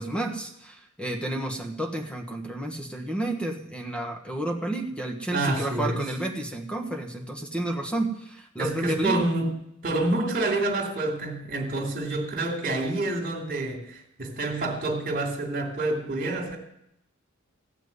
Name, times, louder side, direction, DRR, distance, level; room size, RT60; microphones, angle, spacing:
voice 1, 0.0-9.2, right 1 dB, 5° left, 3 dB, 1.4 m, -31 dB
voice 2, 5.3-6.0 8.6-9.5 9.8-16.6, right 2 dB, 40° right, 2 dB, 2.8 m, -28 dB
15.5 x 6.0 x 9.7 m, 0.77 s
head